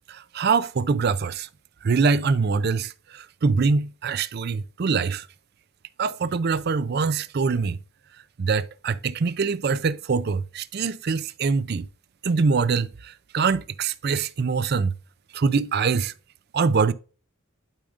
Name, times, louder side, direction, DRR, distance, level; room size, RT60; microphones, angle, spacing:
voice 1, 0.1-1.5 1.8-5.3 6.0-7.8 8.4-11.9 12.2-14.9 15.3-16.1 16.5-16.9, right 5 dB, 50° right, 0.4 m, -24 dB
12.0 x 5.1 x 2.5 m
head